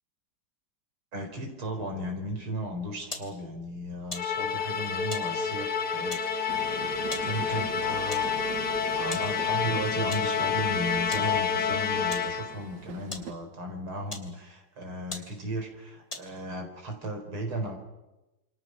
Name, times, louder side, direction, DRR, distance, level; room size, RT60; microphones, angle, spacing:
voice 1, 1.1-7.0 7.2-8.7 9.0-17.8, right 1 dB, 80° right, 3 dB, 5.3 m, -36 dB
sound 1, 3.1-3.3 4.1-4.3 5.1-5.3 6.1-6.3 7.1-7.3 8.1-8.3 9.1-9.3 10.1-10.3 11.1-11.3 12.1-12.3 13.1-13.3 14.1-14.3 14.8-14.9 15.1-15.3 16.1-16.4, left 2 dB, 15° left, 2.8 m, -39 dB
Musical instrument, 4.1-12.7, left 6 dB, 55° left, 1.8 m, -29 dB
Train, 6.5-13.3, right 8 dB, 60° right, 1.7 m, -43 dB
27.5 x 25.5 x 6.4 m, 1.0 s
omnidirectional pair, 2.3 m